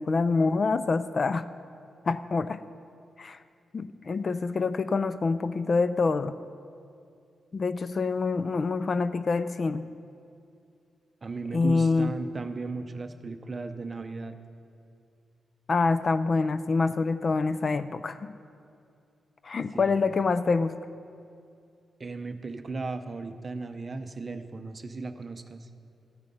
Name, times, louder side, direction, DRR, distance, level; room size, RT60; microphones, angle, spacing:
voice 1, 0.0-1.5 2.1-2.6 3.2-3.4 3.7-6.4 7.5-9.9 11.5-12.1 15.7-18.3 19.4-20.7, left 4 dB, 40° left, 13 dB, 0.3 m, -26 dB
voice 2, 11.2-14.4 19.7-19.9 22.0-25.7, right 3 dB, 30° right, 8 dB, 0.6 m, -36 dB
14.0 x 8.8 x 5.4 m, 2.5 s
wide cardioid pair, 145°, 0 cm